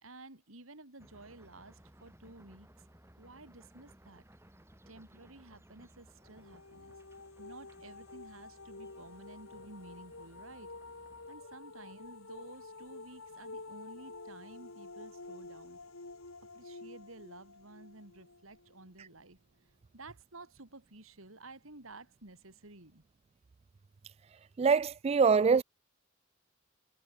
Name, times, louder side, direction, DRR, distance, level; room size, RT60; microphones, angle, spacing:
voice 1, 0.0-2.9 3.2-4.3 4.9-7.0 7.4-10.7 11.3-15.8 16.5-19.4 19.9-23.0, right 2 dB, 75° right, 3.9 m, -53 dB
sound 1, 1.0-11.3, right 1 dB, 10° right, 2.3 m, -60 dB
sound 2, 6.2-19.1, left 3 dB, 75° left, 2.5 m, -50 dB
voice 2, 24.6-25.6, right 5 dB, 30° right, 0.3 m, -24 dB
head